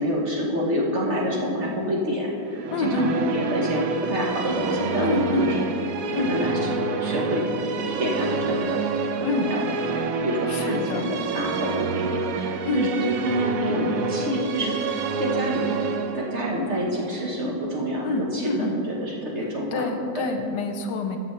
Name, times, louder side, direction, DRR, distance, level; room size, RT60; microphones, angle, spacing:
voice 1, 0.0-2.3 2.8-5.6 6.1-9.6 9.9-15.6 16.1-20.2, equal, 45° right, -2 dB, 1.3 m, -28 dB
Musical instrument, 2.5-17.9, right 4 dB, 65° right, 0.9 m, -28 dB
voice 2, 2.7-3.1 5.0-5.5 6.1-6.3 9.2-9.5 10.5-11.1 12.7-12.9 18.0-18.7 19.7-21.2, left 2 dB, 80° left, 6 dB, 1.3 m, -26 dB
12.5 x 6.7 x 3.2 m, 2.5 s
omnidirectional pair, 1.8 m